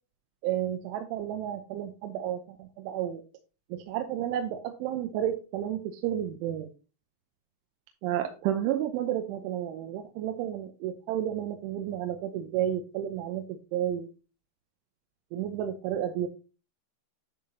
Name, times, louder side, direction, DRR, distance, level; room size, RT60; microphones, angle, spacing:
voice 1, 0.4-3.2 3.7-6.7 8.0-14.1 15.3-16.3, right 11 dB, 80° right, 5 dB, 3.1 m, -31 dB
10.5 x 5.8 x 2.8 m, 0.32 s
omnidirectional pair, 5.7 m